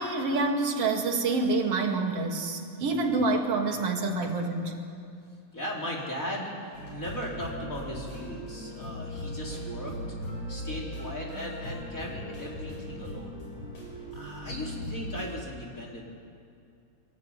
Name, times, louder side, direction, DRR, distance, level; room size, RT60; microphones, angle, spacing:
voice 1, 0.0-4.7, right 3 dB, 55° right, 1 dB, 3.4 m, -27 dB
voice 2, 5.5-10.0 10.5-13.4 14.1-16.0, equal, 25° left, -2 dB, 4.3 m, -37 dB
sound 1, 6.7-15.2, equal, 75° left, 7.8 m, -38 dB
24.0 x 23.0 x 9.8 m, 2.4 s
omnidirectional pair, 3.3 m